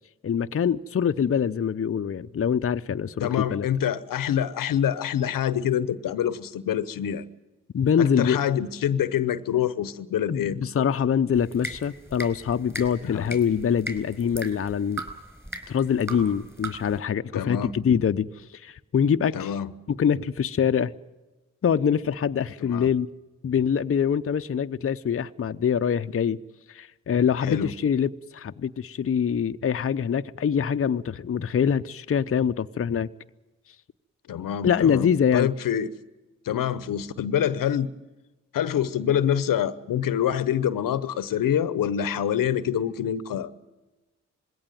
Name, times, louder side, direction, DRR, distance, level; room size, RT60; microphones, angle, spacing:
voice 1, 0.2-3.7 7.7-8.4 10.3-15.0 15.7-19.6 19.9-20.9 21.6-23.1 23.4-26.4 26.7-33.1 34.6-35.5, left 7 dB, 45° left, 0.7 m, -24 dB
voice 2, 3.2-7.2 8.0-10.6 13.0-13.3 17.3-17.7 19.3-19.7 22.6-22.9 27.4-27.7 34.3-35.9 36.4-37.9 38.5-43.5, left 9 dB, 75° left, 0.9 m, -26 dB
sound 1, 11.3-17.0, right 1 dB, 5° right, 4.4 m, -39 dB
20.5 x 17.0 x 9.2 m
supercardioid pair, 45°, 33 cm